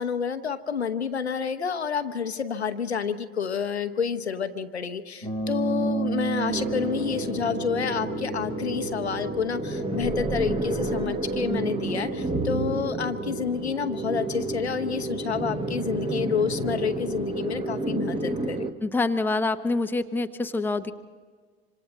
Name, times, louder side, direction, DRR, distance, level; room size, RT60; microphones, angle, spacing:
voice 1, 0.0-18.7, left 6 dB, 80° left, 10 dB, 0.9 m, -29 dB
sound 1, 5.2-15.3, right 2 dB, 80° right, 7.4 m, -35 dB
sound 2, 6.5-18.7, right 2 dB, 15° right, 1.3 m, -30 dB
voice 2, 18.8-20.9, left 3 dB, 5° left, 7 dB, 0.8 m, -26 dB
26.0 x 25.5 x 4.1 m, 1.5 s
figure-of-eight pair, 75°, 32 cm